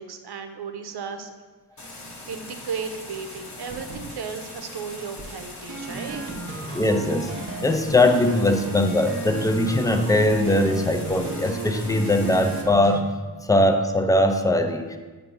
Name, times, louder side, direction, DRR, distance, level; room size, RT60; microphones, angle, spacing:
voice 1, 0.0-1.3 2.3-6.6, right 5 dB, 70° right, 7 dB, 0.7 m, -35 dB
sound 1, 1.8-12.6, left 2 dB, 45° left, 1.0 m, -41 dB
sound 2, 2.7-3.4 3.7-4.4 4.7-13.0, right 2 dB, 35° right, 0.7 m, -35 dB
voice 2, 6.7-7.3 7.6-13.1 13.4-15.0, left 1 dB, 10° left, 7 dB, 0.4 m, -21 dB
7.6 x 2.7 x 5.4 m, 1.3 s
wide cardioid pair, 105°, 40 cm